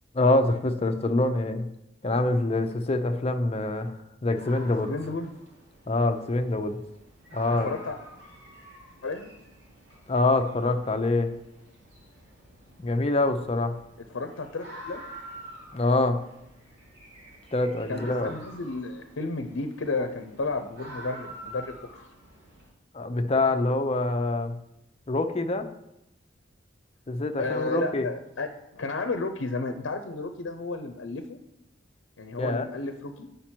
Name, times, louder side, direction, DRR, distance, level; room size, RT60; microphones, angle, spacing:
voice 1, 0.1-1.7 2.0-3.9 4.2-4.9 5.9-6.8 7.3-7.7 10.1-11.3 12.8-13.7 15.7-16.2 17.5-18.3 22.9-24.6 25.1-25.7 27.1-28.1 32.4-32.7, left 2 dB, 30° left, 8 dB, 0.6 m, -25 dB
sound 1, 4.3-22.7, equal, 65° right, 3.0 m, -48 dB
voice 2, 4.8-5.3 7.6-8.0 9.0-9.3 14.1-15.0 17.9-21.8 27.4-31.4 32.2-33.3, left 3 dB, 90° left, 6 dB, 0.6 m, -32 dB
8.5 x 5.1 x 4.4 m, 0.84 s
head